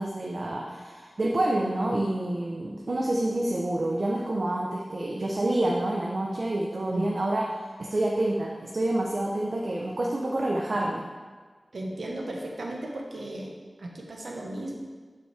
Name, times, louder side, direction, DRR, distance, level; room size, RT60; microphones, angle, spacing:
voice 1, 0.0-7.4 7.9-11.0, right 1 dB, 60° right, -2 dB, 0.8 m, -28 dB
voice 2, 11.7-13.5 13.8-14.7, right 1 dB, 85° right, 0 dB, 1.3 m, -35 dB
11.0 x 5.9 x 3.4 m, 1.5 s
wide cardioid pair, 85°, 0 cm